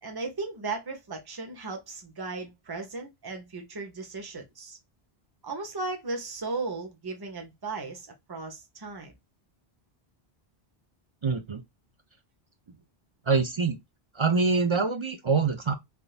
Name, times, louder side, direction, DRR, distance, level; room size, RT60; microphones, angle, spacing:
voice 1, 0.0-4.8 5.4-9.1, right 3 dB, 25° right, 0.8 m, -36 dB
voice 2, 11.2-11.6 13.3-13.8 14.2-15.7, right 4 dB, 40° right, 0.4 m, -25 dB
3.5 x 2.6 x 2.4 m
omnidirectional pair, 1.0 m